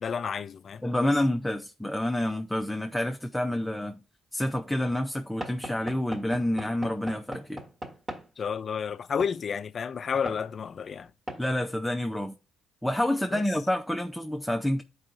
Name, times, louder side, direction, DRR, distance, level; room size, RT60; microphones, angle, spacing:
voice 1, 0.0-1.1 8.4-11.1 13.3-13.4, left 6 dB, 50° left, 0.4 m, -31 dB
voice 2, 0.8-4.0 4.3-7.6 11.4-12.3 12.8-14.8, left 1 dB, 5° left, 0.6 m, -28 dB
Knock / Wood, 5.4-8.3 9.2-9.4 10.3-10.4 11.3-11.5, equal, 30° right, 1.5 m, -39 dB
11.5 x 4.8 x 2.5 m
cardioid pair, 90°, 0 cm